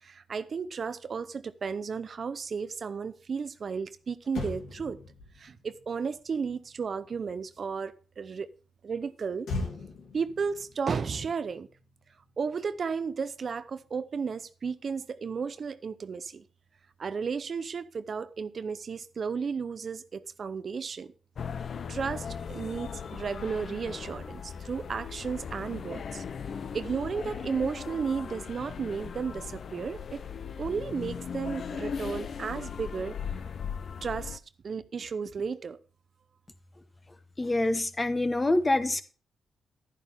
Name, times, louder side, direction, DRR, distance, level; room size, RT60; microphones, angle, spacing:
voice 1, 0.0-5.0 5.4-8.5 8.8-9.5 10.1-11.7 12.4-16.4 17.0-21.1 21.9-26.2 26.7-30.2 30.6-33.2 34.0-35.8, right 5 dB, 50° right, 0.6 m, -33 dB
Motor vehicle (road), 3.8-3.9 4.2-7.8 9.4-12.0 12.3-12.5, left 3 dB, 80° left, 2.8 m, -40 dB
sound 1, 21.4-34.4, left 6 dB, 60° left, 0.6 m, -38 dB
voice 2, 37.4-39.0, left 2 dB, 25° left, 1.0 m, -26 dB
11.0 x 10.5 x 3.4 m
cardioid pair, 75°, 0 cm